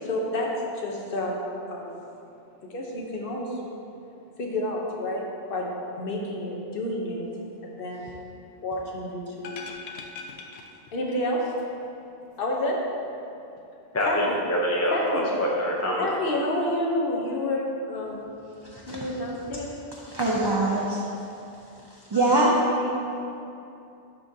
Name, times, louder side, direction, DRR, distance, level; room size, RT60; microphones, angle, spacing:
voice 1, 0.0-0.5 0.7-2.0 2.7-3.6 4.4-5.7 6.0-7.2 7.6-8.1 8.6-9.5 10.9-11.4 12.4-12.8 14.1-14.4 14.9-15.3 16.0-18.2 18.9-19.7 22.3-23.2, left 1 dB, 60° left, -2 dB, 1.0 m, -29 dB
sound 1, 9.4-11.3 11.6-11.7, left 4 dB, 80° left, 0.8 m, -41 dB
voice 2, 13.9-16.1, equal, 20° left, -3 dB, 0.4 m, -25 dB
voice 3, 18.6-19.0 20.0-21.0 22.1-22.5, right 2 dB, 35° right, -4 dB, 0.4 m, -23 dB
11.0 x 3.7 x 2.7 m, 2.7 s
omnidirectional pair, 1.0 m